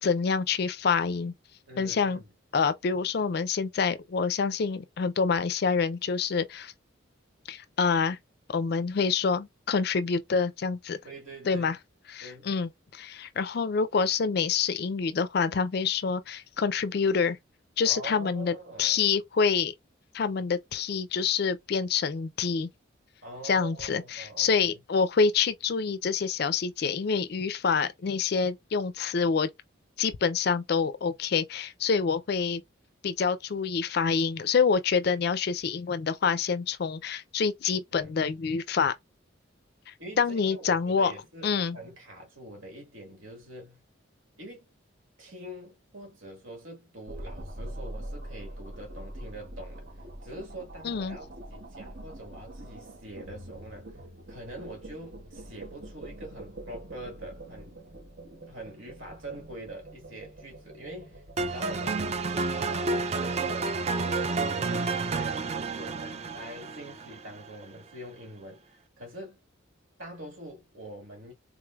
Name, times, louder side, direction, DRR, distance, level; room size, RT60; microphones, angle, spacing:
voice 1, 0.0-1.3 1.8-2.2 2.5-6.7 7.5-8.2 8.5-11.0 11.5-11.7 12.1-17.4 17.8-19.7 20.1-22.7 23.4-29.5 30.0-32.6 33.0-38.9 39.9-41.1 41.4-41.8 50.8-51.2, left 5 dB, 50° left, 0.4 m, -27 dB
voice 2, 1.7-2.3 11.0-11.7 12.2-12.6 17.8-19.0 23.2-24.8 37.9-38.1 40.0-43.8 44.4-44.7 45.2-54.0 54.3-57.8 58.5-62.1 62.5-69.4 70.0-71.3, right 1 dB, 75° right, 1.7 m, -44 dB
sound 1, 47.1-64.3, right 1 dB, 50° right, 0.8 m, -44 dB
sound 2, 61.4-67.5, right 3 dB, 30° right, 0.4 m, -30 dB
3.7 x 3.2 x 2.3 m
head